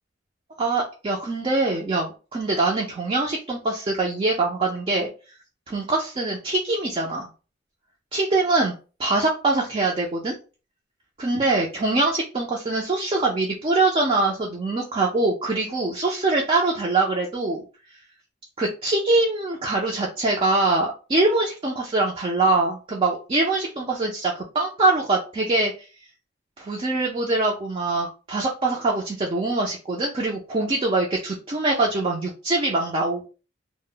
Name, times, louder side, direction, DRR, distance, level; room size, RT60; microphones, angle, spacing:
voice 1, 0.6-5.1 5.7-7.3 8.1-8.7 9.0-10.4 11.2-17.6 18.6-25.7 26.6-33.3, right 2 dB, 30° right, -1 dB, 0.4 m, -23 dB
2.0 x 2.0 x 3.6 m, 0.34 s
head